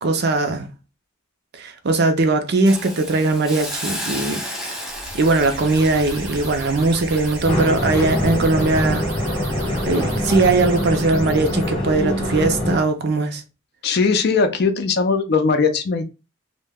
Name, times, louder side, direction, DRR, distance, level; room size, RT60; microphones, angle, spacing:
voice 1, 0.0-0.7 1.6-4.4 5.2-9.1 9.9-13.4, right 3 dB, 55° right, 0.5 m, -19 dB
Hiss, 2.7-9.7 10.1-10.2, equal, ahead, 0.5 m, -34 dB
sound 1, 4.9-11.7, right 2 dB, 85° right, 0.8 m, -33 dB
sound 2, 7.4-12.8, left 1 dB, 25° left, 0.9 m, -24 dB
voice 2, 13.8-16.0, left 4 dB, 55° left, 0.4 m, -19 dB
2.2 x 2.1 x 3.4 m
head